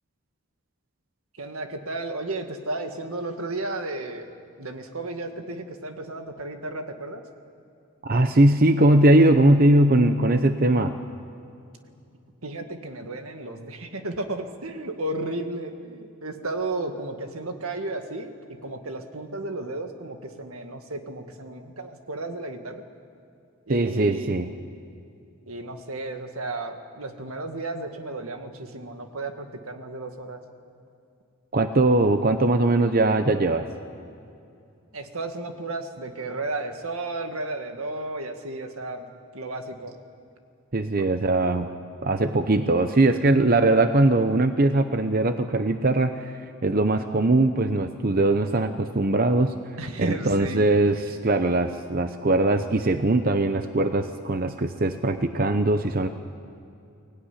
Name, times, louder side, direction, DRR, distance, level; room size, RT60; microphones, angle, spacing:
voice 1, 1.4-4.3 4.6-7.2 12.4-18.3 18.6-22.8 23.7-24.3 25.5-30.4 34.9-39.1 39.3-39.9 49.8-50.7, right 2 dB, 80° right, 6 dB, 1.9 m, -33 dB
voice 2, 8.0-10.9 23.7-24.5 31.5-33.7 40.7-41.7 42.0-56.1, right 2 dB, 40° right, 8 dB, 0.8 m, -21 dB
23.5 x 16.5 x 10.0 m, 2.6 s
head